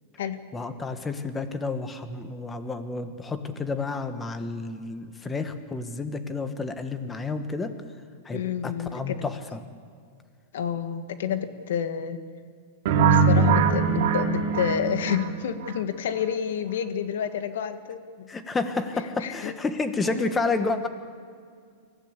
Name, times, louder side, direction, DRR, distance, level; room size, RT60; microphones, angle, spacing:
voice 1, 0.5-7.7 8.2-9.6 18.3-20.9, left 3 dB, 10° left, 9 dB, 1.3 m, -30 dB
voice 2, 8.3-9.3 10.5-12.2 13.1-18.3 18.9-19.5 20.1-20.3, left 8 dB, 75° left, 9 dB, 1.7 m, -29 dB
sound 1, 12.9-15.7, right 5 dB, 55° right, 3.0 m, -22 dB
25.0 x 15.5 x 8.4 m, 2.1 s
supercardioid pair, 155°, 0 cm